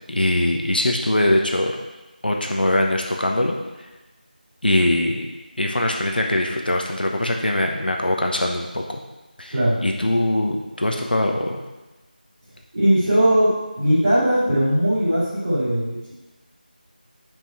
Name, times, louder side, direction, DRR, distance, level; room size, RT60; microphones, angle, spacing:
voice 1, 0.1-1.8 2.2-3.6 4.6-5.3 5.6-9.0 9.4-9.6 9.8-11.6, left 1 dB, 75° left, 1 dB, 1.1 m, -22 dB
voice 2, 12.7-13.5 13.8-16.1, equal, 20° right, -12 dB, 2.5 m, -19 dB
6.1 x 5.3 x 4.5 m, 1.1 s
figure-of-eight pair, 180°, 5 cm